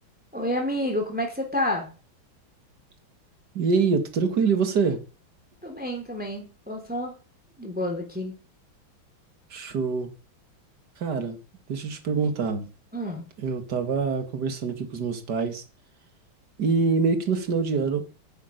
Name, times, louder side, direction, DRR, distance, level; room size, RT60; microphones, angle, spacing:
voice 1, 0.3-1.9 5.6-7.1 7.6-8.3 12.9-13.3, left 1 dB, 5° right, 3.3 m, -29 dB
voice 2, 3.5-5.0 9.5-10.1 11.0-11.4 11.7-12.7 13.4-15.6 16.6-18.1, right 5 dB, 55° right, 2.6 m, -25 dB
10.5 x 9.0 x 9.4 m
omnidirectional pair, 2.3 m